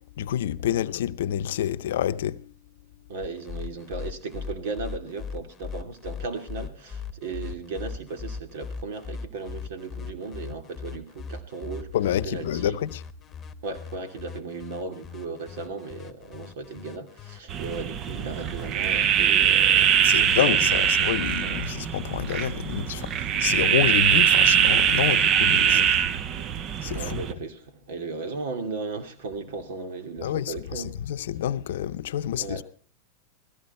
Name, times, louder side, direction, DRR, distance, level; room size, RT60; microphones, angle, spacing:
voice 1, 0.2-2.5 11.9-13.0 20.0-25.9 26.8-27.2 30.2-32.6, left 11 dB, 75° left, 0.7 m, -28 dB
voice 2, 3.1-11.9 12.2-12.8 13.6-20.7 21.0-21.1 21.4-21.6 25.7-25.9 26.4-26.5 26.9-30.9 32.3-32.6, right 4 dB, 70° right, 2.8 m, -36 dB
sound 1, 3.2-20.7, left 6 dB, 25° left, 1.2 m, -39 dB
sound 2, 17.5-27.3, right 9 dB, 40° right, 0.9 m, -22 dB
16.5 x 14.5 x 4.4 m
hypercardioid pair, 105°, 0 cm